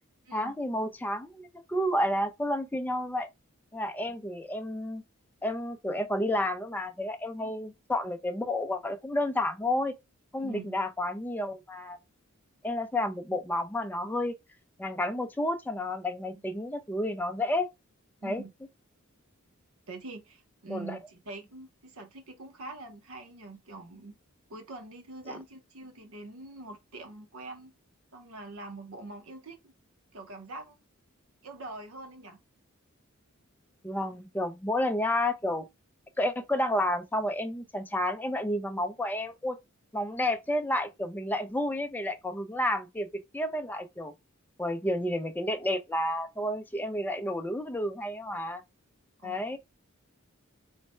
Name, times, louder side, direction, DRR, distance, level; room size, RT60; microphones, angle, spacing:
voice 1, 0.3-3.3 3.7-5.0 5.4-9.9 10.3-12.0 12.6-14.4 14.8-17.7 18.2-18.4 20.7-21.0 25.3-25.4 33.8-35.7 36.2-39.6 39.9-44.1 44.6-48.6 49.2-49.6, left 1 dB, 10° left, 0.4 m, -31 dB
voice 2, 10.4-10.8 16.3-16.4 18.2-18.5 19.9-24.2 24.5-27.7 28.1-29.7 30.1-30.8 31.4-32.4 49.2-49.5, right 2 dB, 80° right, 0.8 m, -44 dB
3.2 x 2.1 x 4.2 m
head